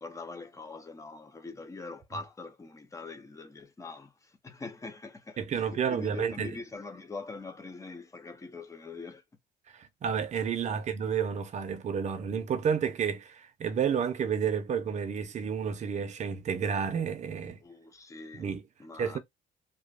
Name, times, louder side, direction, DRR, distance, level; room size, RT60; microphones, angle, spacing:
voice 1, 0.0-9.2 17.6-18.5 18.8-19.2, left 3 dB, 20° left, 0.6 m, -43 dB
voice 2, 5.4-6.5 9.7-17.6 18.3-18.6 19.0-19.2, right 7 dB, 45° right, 0.6 m, -30 dB
2.9 x 2.2 x 2.3 m
cardioid pair, 110°, 17 cm